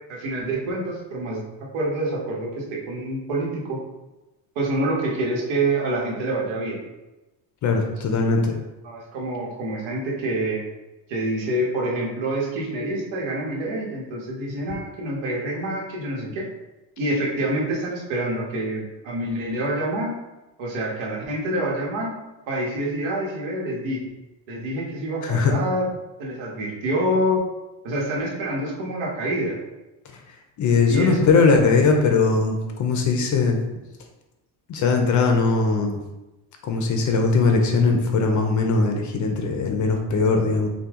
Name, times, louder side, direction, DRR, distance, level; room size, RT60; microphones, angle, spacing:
voice 1, 0.1-1.4 1.7-3.8 4.5-6.8 8.1-8.3 8.8-10.6 11.1-16.4 17.0-20.1 20.6-22.2 22.5-24.0 24.5-25.9 26.2-27.4 27.8-29.6 30.9-31.5, right 1 dB, 80° right, -4 dB, 1.5 m, -26 dB
voice 2, 7.6-8.6 25.2-25.5 30.6-33.6 34.7-36.0 36.6-40.7, left 4 dB, 40° left, 3 dB, 0.6 m, -20 dB
5.7 x 2.3 x 3.6 m, 1.0 s
cardioid pair, 165°, 45 cm